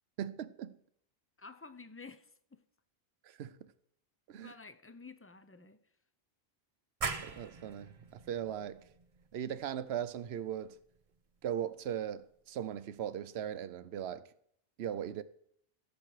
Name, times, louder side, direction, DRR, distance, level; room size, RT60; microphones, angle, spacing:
voice 1, 0.2-0.8 3.2-3.7 4.3-4.5 7.2-8.8 9.3-10.8 11.4-14.3 14.8-15.2, right 10 dB, 90° right, 0.9 m, -39 dB
voice 2, 1.4-2.6 4.3-5.8, left 4 dB, 20° left, 0.4 m, -51 dB
sound 1, 7.0-12.4, right 5 dB, 40° right, 0.7 m, -44 dB
16.5 x 7.3 x 4.7 m
omnidirectional pair, 1.0 m